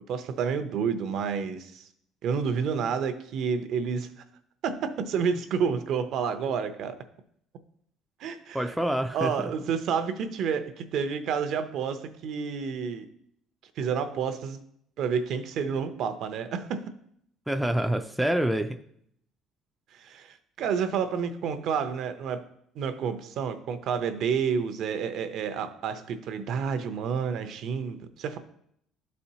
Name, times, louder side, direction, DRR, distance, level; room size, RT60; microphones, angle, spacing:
voice 1, 0.1-1.9 2.2-4.2 4.6-7.0 8.2-8.7 9.1-13.1 13.8-14.6 15.0-16.8 19.9-22.4 22.7-28.4, right 6 dB, 55° right, 10 dB, 0.6 m, -29 dB
voice 2, 8.5-9.5 17.5-18.8, right 1 dB, ahead, 6 dB, 0.3 m, -27 dB
12.0 x 4.2 x 2.8 m, 0.70 s
cardioid pair, 150°, 0 cm